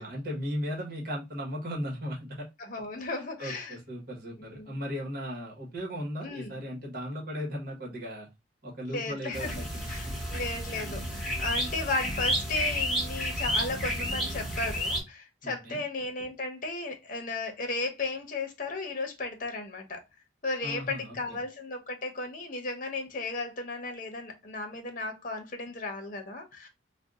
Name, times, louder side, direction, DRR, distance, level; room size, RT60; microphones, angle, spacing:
voice 1, 0.0-2.5 3.4-8.3 8.6-10.1 15.4-15.8 20.6-21.4, equal, 50° right, 1.2 m, -36 dB
voice 2, 2.6-3.8 4.4-4.7 6.2-6.5 8.9-20.0 20.4-26.7, left 3 dB, 45° left, 0.8 m, -35 dB
sound 1, 9.3-15.0, equal, ahead, 1.3 m, -31 dB
2.7 x 2.2 x 3.6 m
head